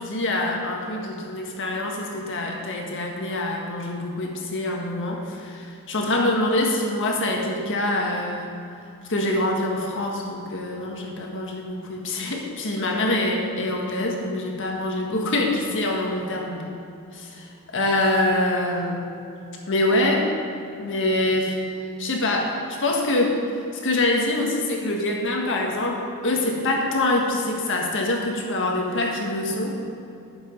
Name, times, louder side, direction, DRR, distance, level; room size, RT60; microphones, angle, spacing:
voice 1, 0.0-8.5 9.1-16.6 17.1-19.0 19.7-20.3 20.8-21.5 22.0-23.4 23.8-29.8, left 1 dB, 60° left, 0 dB, 1.6 m, -25 dB
11.5 x 7.2 x 5.3 m, 2.6 s
head